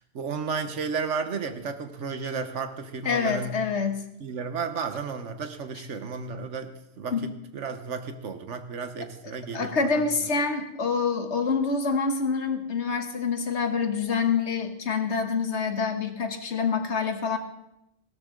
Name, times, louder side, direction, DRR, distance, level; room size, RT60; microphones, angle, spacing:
voice 1, 0.1-3.5 4.2-10.0, right 5 dB, 70° right, 8 dB, 1.4 m, -33 dB
voice 2, 3.0-4.1 7.1-7.3 9.5-17.4, left 5 dB, 60° left, 7 dB, 1.5 m, -26 dB
16.0 x 13.0 x 3.8 m, 0.83 s
omnidirectional pair, 1.3 m